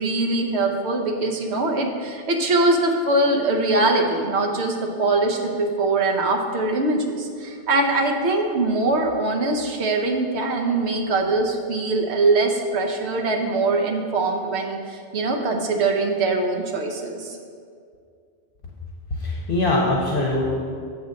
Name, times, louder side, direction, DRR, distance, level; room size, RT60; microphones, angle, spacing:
voice 1, 0.0-17.4, right 2 dB, 90° right, 2 dB, 1.1 m, -22 dB
voice 2, 19.1-20.4, left 2 dB, 60° left, -3 dB, 1.0 m, -22 dB
7.0 x 4.0 x 6.3 m, 2.3 s
omnidirectional pair, 1.1 m